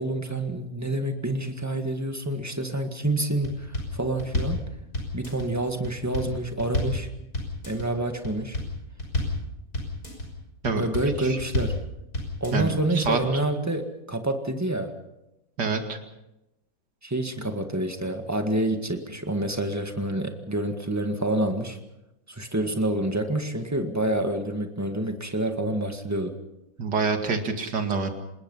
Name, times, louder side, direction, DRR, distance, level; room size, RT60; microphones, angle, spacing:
voice 1, 0.0-4.7 5.1-7.1 7.7-8.6 10.7-11.7 12.4-14.9 17.0-21.8 22.3-26.3, right 1 dB, 10° right, 5 dB, 1.8 m, -28 dB
sound 1, 3.4-3.9 4.2-4.6 4.9-5.5 5.8-6.3 6.6-7.0 7.3-7.9 8.2-8.7 9.0-9.4 9.7-10.3 10.6-11.1 11.4-11.8 12.1-12.7 13.0-13.1, left 2 dB, 55° left, 6.3 m, -29 dB
voice 2, 12.5-13.4 15.6-16.0 26.8-28.1, right 4 dB, 70° right, 5 dB, 2.8 m, -27 dB
26.5 x 20.5 x 5.6 m, 0.92 s
omnidirectional pair, 1.9 m